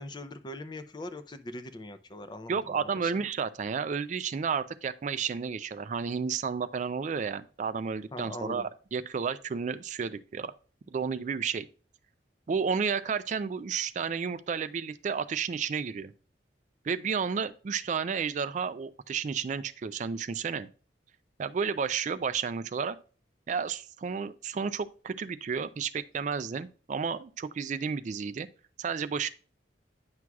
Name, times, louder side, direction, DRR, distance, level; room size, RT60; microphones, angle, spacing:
voice 1, 0.0-3.1 8.1-8.7, left 1 dB, 25° left, 0.5 m, -41 dB
voice 2, 2.5-10.5 10.9-11.7 12.5-16.1 16.8-20.7 21.4-23.0 23.5-28.5 28.8-29.3, right 6 dB, 45° right, 0.3 m, -32 dB
9.5 x 6.1 x 2.3 m
head